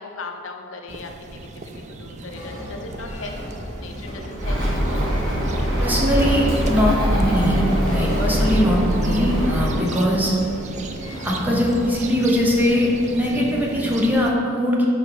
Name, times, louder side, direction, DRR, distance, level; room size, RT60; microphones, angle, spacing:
voice 1, 0.0-4.7 5.0-5.3 5.6-6.1, left 3 dB, 70° left, 3 dB, 0.6 m, -38 dB
sound 1, 0.9-14.3, right 2 dB, 35° right, 0.4 m, -34 dB
sound 2, 2.3-12.1, equal, 35° left, 1.0 m, -37 dB
Bird, 4.4-9.8, equal, 70° right, 1.5 m, -22 dB
voice 2, 5.8-10.3 11.2-14.9, equal, 10° right, -3 dB, 0.8 m, -21 dB
4.9 x 4.8 x 4.8 m, 2.7 s
head